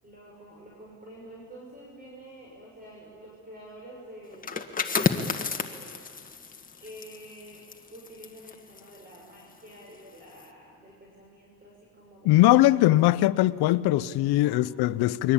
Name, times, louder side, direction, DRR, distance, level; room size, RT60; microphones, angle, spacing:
voice 1, 0.0-6.3 6.8-7.6 7.9-12.5 14.3-14.6, right 1 dB, 20° right, 6.8 m, -48 dB
sound 1, 4.3-9.8 10.2-10.5, left 5 dB, 20° left, 1.6 m, -32 dB
voice 2, 12.2-15.3, left 16 dB, 70° left, 0.9 m, -21 dB
29.5 x 23.0 x 8.7 m
cardioid pair, 125°, 40 cm